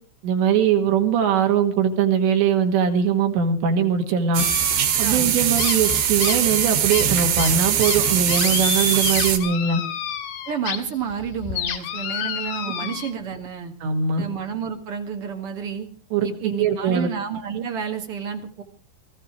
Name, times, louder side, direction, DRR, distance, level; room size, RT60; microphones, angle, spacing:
voice 1, 0.2-4.4 5.0-9.8 13.8-14.2 16.1-17.1, right 7 dB, 85° right, 5 dB, 4.3 m, -21 dB
sound 1, 4.3-9.4, right 9 dB, 65° right, 3.4 m, -22 dB
sound 2, 4.4-5.2 5.6-10.8 11.1-13.1, left 9 dB, 90° left, 4.3 m, -30 dB
voice 2, 5.0-5.3 10.5-13.7 14.2-15.9 16.2-18.6, right 7 dB, 45° right, 5 dB, 2.0 m, -30 dB
19.5 x 15.0 x 4.6 m, 0.39 s
omnidirectional pair, 5.0 m